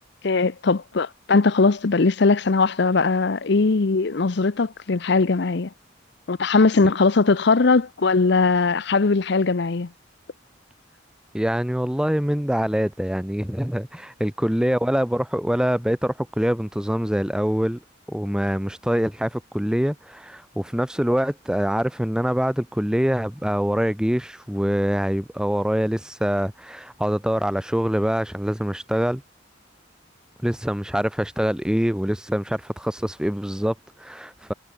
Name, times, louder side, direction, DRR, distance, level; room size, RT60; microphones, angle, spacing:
voice 1, 0.2-5.7 6.3-9.9, left 4 dB, 60° left, 0.7 m, -20 dB
voice 2, 11.3-17.8 18.1-29.2 30.4-34.5, equal, 5° right, 0.8 m, -24 dB
head